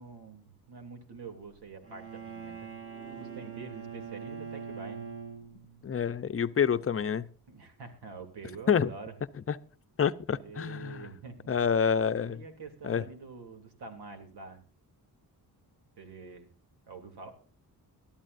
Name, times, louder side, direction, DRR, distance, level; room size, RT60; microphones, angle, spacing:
voice 1, 0.0-2.7 3.0-5.1 7.5-9.1 10.3-11.5 12.2-14.6 16.0-16.5 16.9-17.3, right 4 dB, 80° right, 3.2 m, -46 dB
Bowed string instrument, 1.8-5.9, right 7 dB, 35° right, 3.1 m, -42 dB
voice 2, 5.8-7.3 8.7-8.9 9.5-9.6 10.0-11.0 11.5-12.4 12.8-13.0, left 7 dB, 35° left, 0.7 m, -27 dB
21.5 x 13.0 x 2.6 m
wide cardioid pair, 115°, 39 cm